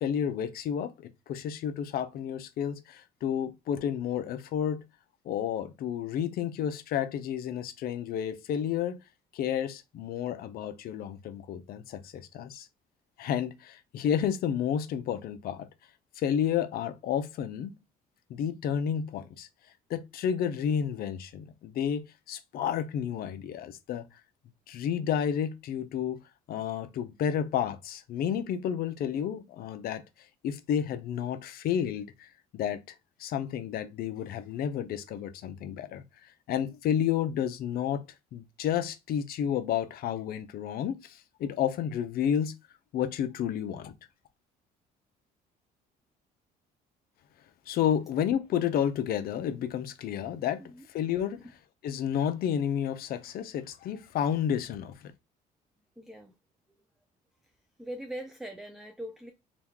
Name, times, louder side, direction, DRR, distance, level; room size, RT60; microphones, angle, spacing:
voice 1, 0.0-4.8 5.2-9.0 9.3-12.7 13.2-15.7 16.2-17.7 18.3-19.5 19.9-22.0 22.3-24.1 24.7-26.2 26.5-30.0 30.4-32.8 33.2-36.0 36.5-38.0 38.3-42.5 42.9-43.9 47.7-50.6 50.9-51.5 51.8-55.1, left 9 dB, 65° left, 0.5 m, -31 dB
voice 2, 56.0-56.3 57.8-59.3, right 1 dB, ahead, 0.3 m, -41 dB
3.0 x 2.3 x 3.5 m
cardioid pair, 110°, 17 cm